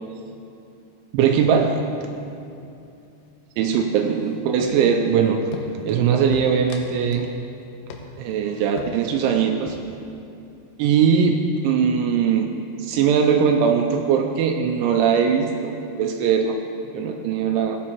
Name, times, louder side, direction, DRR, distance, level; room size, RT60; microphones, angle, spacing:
voice 1, 1.1-1.8 3.6-5.4 5.9-7.3 8.2-9.8 10.8-11.4 11.6-12.5 12.8-16.5 16.9-17.8, right 7 dB, 85° right, 3 dB, 2.9 m, -20 dB
sound 1, 1.5-1.7 2.0-2.4 2.6-3.4 3.7-5.1 5.5-6.0 6.3-7.4 7.6-7.7 7.9-8.3 8.8-9.2 9.5-10.0, left 6 dB, 80° left, 3.0 m, -39 dB
17.0 x 9.8 x 3.0 m, 2.7 s
omnidirectional pair, 5.5 m